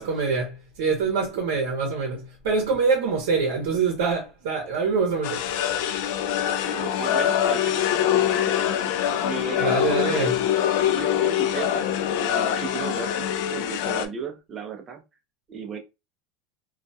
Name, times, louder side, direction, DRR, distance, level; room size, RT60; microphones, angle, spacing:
voice 1, 0.0-5.7 9.6-10.3, right 4 dB, 75° right, 0.7 m, -25 dB
sound 1, 5.2-14.0, left 10 dB, 60° left, 0.3 m, -24 dB
voice 2, 6.5-8.9 9.2-10.3 10.9-11.9 12.1-15.0 15.5-15.8, right 7 dB, 25° right, 0.5 m, -36 dB
2.3 x 2.1 x 2.6 m
supercardioid pair, 160°, 0 cm